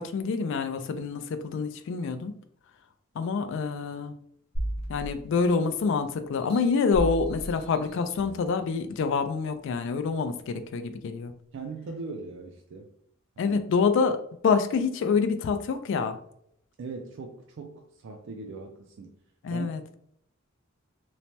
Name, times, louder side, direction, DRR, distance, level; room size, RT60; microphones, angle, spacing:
voice 1, 0.0-2.3 3.2-4.2 4.9-11.3 13.4-16.2 19.4-19.8, left 5 dB, 60° left, 10 dB, 0.3 m, -27 dB
sound 1, 4.5-5.8 6.3-8.5 9.1-9.2, right 1 dB, 30° left, 0.8 m, -35 dB
voice 2, 11.5-12.9 13.4-13.6 16.8-19.1 19.5-19.7, right 4 dB, 60° right, 2 dB, 0.3 m, -40 dB
3.1 x 2.1 x 2.7 m, 0.71 s
head